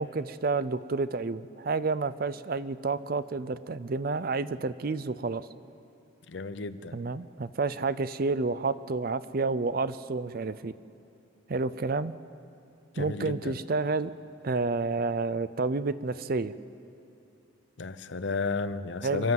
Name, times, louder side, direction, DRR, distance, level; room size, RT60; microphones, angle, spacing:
voice 1, 0.0-5.5 6.9-10.7 11.5-12.1 13.0-14.1 14.4-16.5 19.0-19.3, right 3 dB, 50° right, 15 dB, 0.5 m, -30 dB
voice 2, 6.3-7.0 12.9-13.6 17.8-19.3, left 4 dB, 60° left, 13 dB, 0.7 m, -32 dB
28.5 x 11.5 x 7.8 m, 2.7 s
head